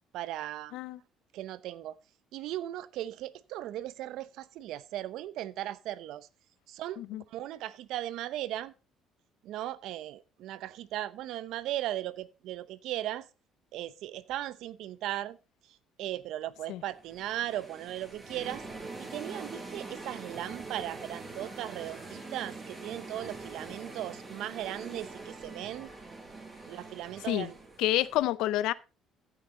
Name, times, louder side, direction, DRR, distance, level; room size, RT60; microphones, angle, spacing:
voice 1, 0.1-0.8 1.3-1.9 2.3-6.3 6.7-7.0 7.3-8.7 9.4-13.3 13.7-15.4 16.0-18.6 19.0-25.9 26.7-27.5, right 13 dB, 75° right, 0.7 m, -37 dB
sound 1, 16.9-28.2, right 3 dB, 25° right, 7.8 m, -44 dB
voice 2, 27.8-28.7, left 14 dB, 80° left, 0.5 m, -28 dB
15.0 x 6.5 x 4.0 m
supercardioid pair, 85°, 0 cm